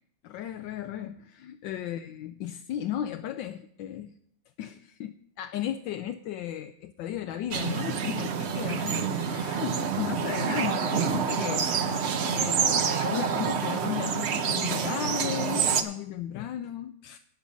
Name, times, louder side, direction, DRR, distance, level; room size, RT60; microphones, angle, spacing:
voice 1, 0.2-4.2 4.6-11.7 12.3-17.2, left 11 dB, 80° left, 8 dB, 1.3 m, -35 dB
sound 1, 7.5-15.8, right 6 dB, 60° right, 0.7 m, -27 dB
11.5 x 5.4 x 8.6 m, 0.69 s
omnidirectional pair, 2.0 m